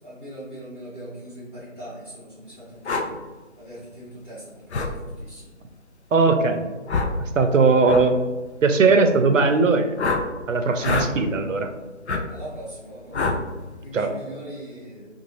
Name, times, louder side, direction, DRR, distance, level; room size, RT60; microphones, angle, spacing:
voice 1, 0.0-3.1 3.6-5.5 12.3-15.1, equal, 10° left, -10 dB, 1.3 m, -41 dB
sound 1, 2.8-3.1 4.7-4.9 6.9-7.2 7.8-8.1 10.0-10.2 10.8-11.1 12.1-12.2 13.1-13.4, left 3 dB, 65° left, 0.5 m, -24 dB
voice 2, 6.1-6.6 7.2-8.2 8.6-9.9 10.5-11.7 13.9-14.1, right 4 dB, 85° right, 7 dB, 0.6 m, -19 dB
3.8 x 2.4 x 3.0 m, 1.2 s
figure-of-eight pair, 165°, 37 cm